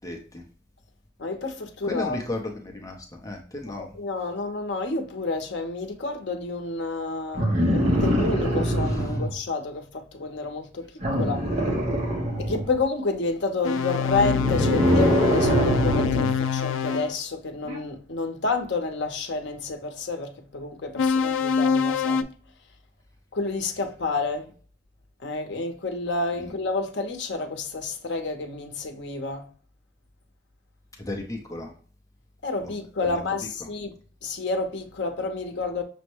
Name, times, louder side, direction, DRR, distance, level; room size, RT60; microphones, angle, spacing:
voice 1, 0.0-0.4 1.9-3.9 31.0-31.7 32.6-32.7 33.0-33.2 33.6-33.7, left 2 dB, 15° left, 0.6 m, -34 dB
voice 2, 1.2-2.2 3.7-11.4 12.4-22.3 23.3-24.4 25.2-29.5 32.4-33.9 34.2-35.8, left 3 dB, 65° left, 0.7 m, -29 dB
sound 1, 7.3-9.3 11.0-12.7 14.0-16.3 17.7-17.8, equal, 35° right, 0.8 m, -23 dB
sound 2, 13.6-17.1 20.9-22.2, left 6 dB, 80° left, 0.3 m, -25 dB
6.2 x 2.2 x 2.9 m
head